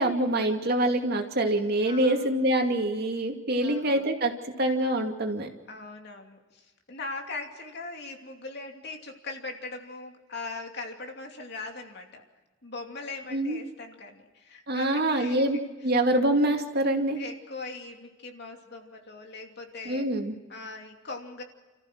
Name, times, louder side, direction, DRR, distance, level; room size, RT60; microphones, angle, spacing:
voice 1, 0.0-5.5 13.3-13.6 14.7-17.2 19.8-20.4, right 1 dB, 55° right, 3 dB, 2.5 m, -25 dB
voice 2, 1.8-2.3 3.6-4.1 5.7-12.2 12.6-15.7 17.1-20.1 20.5-21.4, left 3 dB, 55° left, 3 dB, 2.8 m, -40 dB
30.0 x 15.0 x 6.3 m, 1.2 s
head